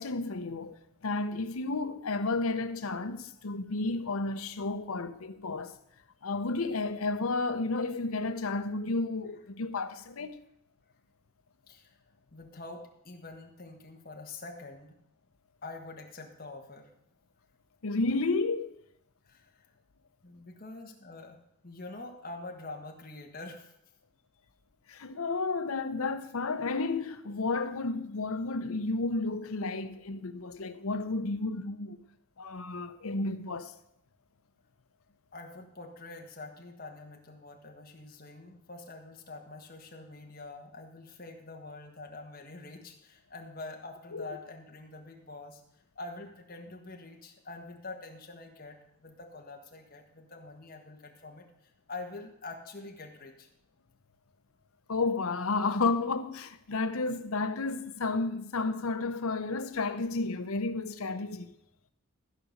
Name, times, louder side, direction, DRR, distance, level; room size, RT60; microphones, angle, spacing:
voice 1, 0.0-5.7 6.2-10.4 17.8-18.8 24.9-32.0 32.4-33.7 44.1-44.4 54.9-61.5, left 3 dB, 75° left, 0.7 m, -32 dB
voice 2, 11.7-12.0 12.3-15.0 15.6-16.9 19.3-19.7 20.2-23.7 35.3-45.6 45.9-53.5, left 2 dB, 40° left, 1.5 m, -45 dB
14.0 x 5.0 x 6.5 m
head